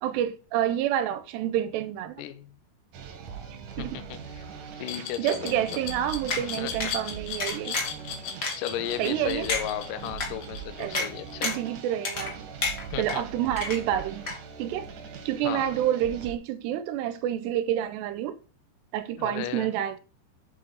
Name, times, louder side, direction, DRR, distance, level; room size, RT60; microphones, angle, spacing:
voice 1, 0.0-2.2 3.8-4.0 5.2-7.8 9.0-9.5 10.8-11.1 11.4-12.5 13.0-14.3 14.6-14.9 15.3-18.4 18.9-20.0, right 11 dB, 85° right, 2.7 m, -28 dB
voice 2, 2.2-2.6 3.8-4.4 4.8-5.8 6.3-6.7 8.6-11.6 12.9-13.2 15.4-15.7 19.2-19.7, left 11 dB, 90° left, 1.9 m, -35 dB
sound 1, 2.9-16.3, right 7 dB, 60° right, 2.4 m, -41 dB
Glass, 4.9-11.7, left 7 dB, 65° left, 3.1 m, -37 dB
sound 2, 6.3-6.4 6.8-6.9 7.4-8.0 8.4-8.5 9.0-9.1 9.5-9.6 10.2-10.3 10.9-11.1 11.4-11.7 12.0-12.3 12.6-13.2 13.6-14.0 14.3-14.4, left 4 dB, 45° left, 1.3 m, -29 dB
8.3 x 7.8 x 4.0 m
omnidirectional pair, 5.1 m